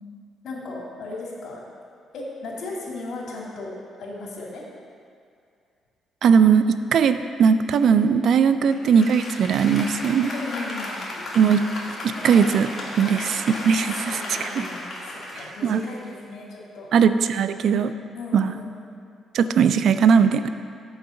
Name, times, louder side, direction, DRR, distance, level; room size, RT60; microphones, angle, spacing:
voice 1, 0.4-1.6 2.1-3.7 4.0-4.6 8.5-8.8 10.3-11.0 13.0-13.2 13.9-16.9 18.1-19.0, left 3 dB, 65° left, -3 dB, 2.3 m, -36 dB
voice 2, 6.2-10.3 11.3-11.7 12.0-12.7 13.0-14.7 15.6-15.8 16.9-17.9 18.3-18.5 19.3-20.5, right 6 dB, 70° right, 11 dB, 0.4 m, -19 dB
Applause, 8.7-16.3, left 1 dB, 35° left, 2.2 m, -34 dB
6.4 x 5.7 x 7.0 m, 2.3 s
cardioid pair, 90°, 0 cm